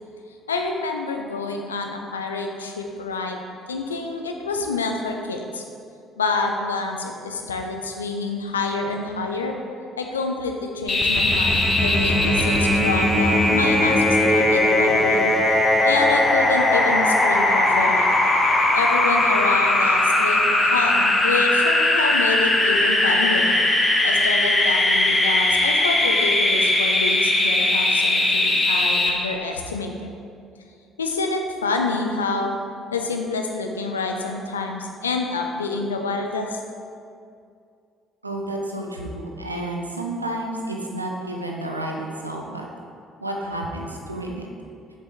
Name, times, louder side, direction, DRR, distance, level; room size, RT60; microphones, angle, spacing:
voice 1, 0.5-3.4 3.7-5.6 6.2-9.6 10.0-15.3 15.8-18.1 18.7-23.5 24.0-30.1 31.0-32.6 32.9-36.6, left 3 dB, 80° left, 3 dB, 0.5 m, -27 dB
sound 1, 10.9-29.1, left 1 dB, 25° left, 1.1 m, -19 dB
voice 2, 38.2-42.7 43.2-44.5, right 1 dB, 85° right, 0 dB, 0.6 m, -30 dB
7.0 x 5.1 x 3.9 m, 2.4 s
figure-of-eight pair, 50°, 0 cm